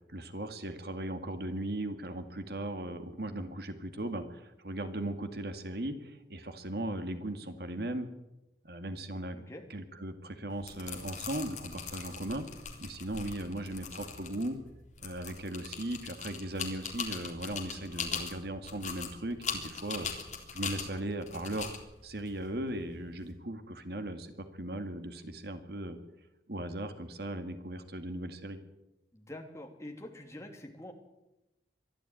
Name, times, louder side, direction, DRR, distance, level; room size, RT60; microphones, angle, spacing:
voice 1, 0.1-8.1 8.6-9.4 9.7-12.5 12.8-14.6 15.0-20.1 20.5-21.8 22.0-26.0 26.5-28.6, right 1 dB, 60° right, 8 dB, 2.1 m, -38 dB
sound 1, 10.5-23.3, left 6 dB, 40° left, 3.6 m, -41 dB
voice 2, 29.1-30.9, left 1 dB, 15° left, 2 dB, 3.0 m, -45 dB
23.0 x 13.0 x 9.2 m, 0.95 s
head